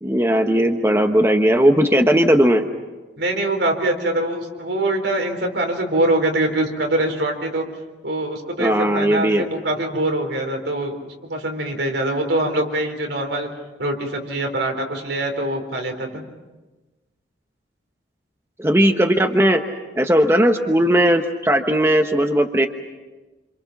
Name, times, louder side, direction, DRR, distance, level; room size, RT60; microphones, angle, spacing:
voice 1, 0.0-2.7 8.6-9.5 18.6-19.6 20.0-22.7, equal, 15° right, 5 dB, 1.1 m, -17 dB
voice 2, 3.2-7.6 8.0-13.5 13.8-16.3, right 1 dB, 80° right, 4 dB, 4.1 m, -23 dB
28.5 x 27.5 x 6.0 m, 1.2 s
head